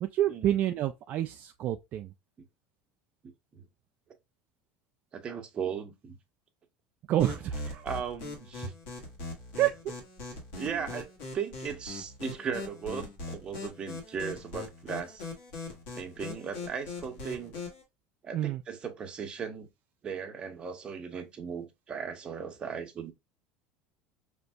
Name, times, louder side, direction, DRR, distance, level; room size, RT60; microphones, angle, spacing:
voice 1, 0.0-2.1 7.1-7.9 9.6-9.7 10.7-10.9 18.3-18.6, right 12 dB, 50° right, 0.3 m, -28 dB
voice 2, 3.2-3.7 5.1-6.2 7.8-8.7 10.5-15.3 15.9-17.5 18.2-19.7 20.0-23.1, right 6 dB, 30° right, 0.8 m, -37 dB
sound 1, 7.2-17.8, left 3 dB, 85° left, 1.5 m, -41 dB
5.1 x 2.5 x 2.2 m
supercardioid pair, 130°, 4 cm